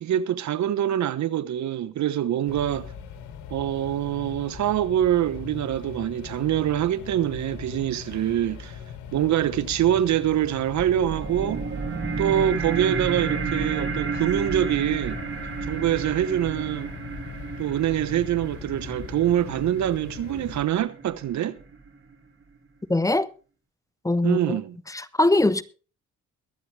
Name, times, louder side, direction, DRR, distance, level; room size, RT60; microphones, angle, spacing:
voice 1, 0.0-2.9 3.5-8.8 9.1-11.7 12.2-15.2 15.7-16.9 17.6-21.6 24.2-24.8, right 11 dB, 70° right, 1.0 m, -25 dB
sound 1, 2.5-20.6, left 7 dB, 75° left, 2.0 m, -40 dB
sound 2, 10.8-21.8, right 5 dB, 40° right, 3.4 m, -32 dB
voice 2, 22.9-23.3 24.0-24.6 24.9-25.6, left 2 dB, 10° left, 1.1 m, -22 dB
22.5 x 8.5 x 3.3 m
cardioid pair, 90°, 30 cm